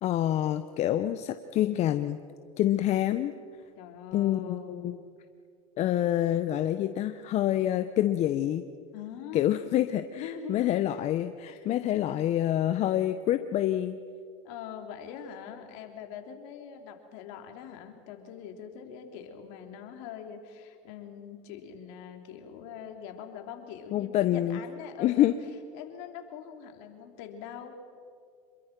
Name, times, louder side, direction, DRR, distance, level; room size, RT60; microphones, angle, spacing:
voice 1, 0.0-2.2 2.6-3.3 4.1-5.0 5.8-8.7 9.3-14.0 23.9-24.6 25.0-25.4, left 12 dB, 45° left, 10 dB, 0.9 m, -27 dB
voice 2, 3.7-5.0 8.9-9.7 10.1-10.9 11.5-11.7 14.4-25.3 25.7-27.7, left 8 dB, 65° left, 4 dB, 3.3 m, -43 dB
27.0 x 22.5 x 6.1 m, 2.2 s
hypercardioid pair, 100°, 16 cm